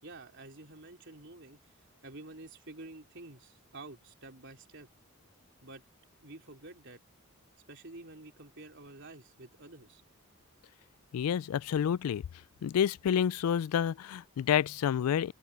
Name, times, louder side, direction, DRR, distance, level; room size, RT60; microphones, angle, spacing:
voice 1, 0.0-1.6 2.0-4.9 5.6-5.8 6.2-7.0 7.7-10.0, right 2 dB, 55° right, 3.8 m, -49 dB
voice 2, 11.1-12.2 12.6-15.3, left 9 dB, 85° left, 0.3 m, -29 dB
open air
head